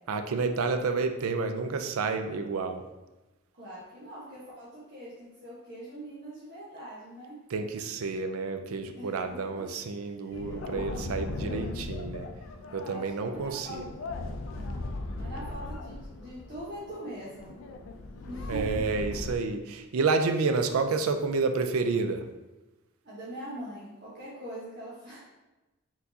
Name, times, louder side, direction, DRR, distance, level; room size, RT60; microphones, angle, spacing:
voice 1, 0.1-2.9 7.5-12.3 12.7-13.9 18.5-22.3, right 4 dB, 90° right, 7 dB, 0.4 m, -29 dB
voice 2, 3.5-7.4 8.9-9.7 10.1-10.6 12.8-13.8 14.5-14.8 15.1-17.5 18.2-18.8 23.0-25.2, right 1 dB, 50° right, -10 dB, 1.1 m, -43 dB
sound 1, 10.3-19.4, left 2 dB, 65° left, 0.4 m, -38 dB
4.5 x 3.8 x 2.7 m, 1.1 s
head